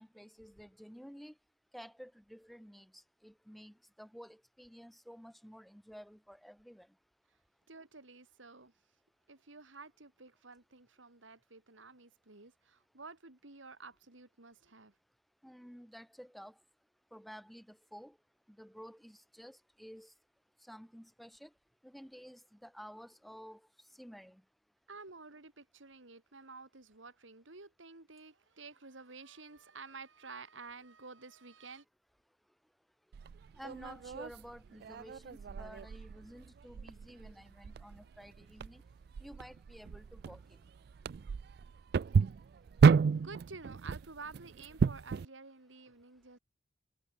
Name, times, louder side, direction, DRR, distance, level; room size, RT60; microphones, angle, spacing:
voice 1, 0.0-1.4 1.7-6.9 15.4-16.6 17.1-18.2 18.5-20.1 20.6-21.5 21.8-23.7 23.9-24.4 33.5-38.8 39.2-40.4, equal, ahead, 3.6 m, -52 dB
voice 2, 7.7-8.7 9.3-14.9 24.9-31.8 42.8-46.4, right 4 dB, 90° right, 2.8 m, -51 dB
sound 1, 33.1-45.3, right 5 dB, 55° right, 0.3 m, -32 dB
head